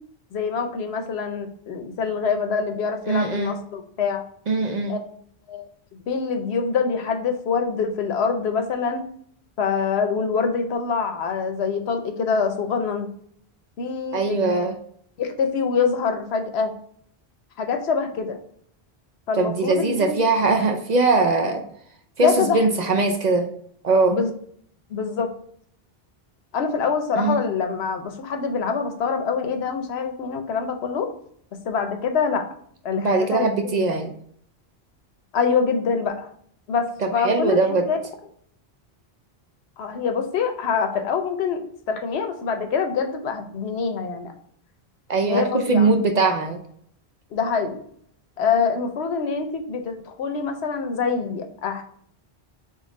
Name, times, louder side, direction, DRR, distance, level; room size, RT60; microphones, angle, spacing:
voice 1, 0.3-4.2 4.9-5.0 5.5-5.7 6.1-9.0 9.6-13.1 13.8-14.6 15.2-16.7 17.6-18.4 19.3-20.2 22.2-22.6 24.1-24.3 24.9-25.3 26.5-31.1 31.6-32.4 32.8-33.5 35.3-36.3 36.7-37.6 37.9-38.0 39.8-44.3 45.3-45.9 47.3-47.8 48.4-51.8, left 5 dB, 85° left, 6 dB, 1.0 m, -25 dB
voice 2, 3.1-3.5 4.5-5.0 14.1-14.7 19.3-21.6 22.2-23.5 23.8-24.2 27.2-27.4 33.0-34.1 37.0-37.9 45.1-46.6, right 3 dB, 50° right, 4 dB, 0.6 m, -21 dB
4.0 x 3.2 x 3.9 m, 0.62 s
omnidirectional pair, 1.1 m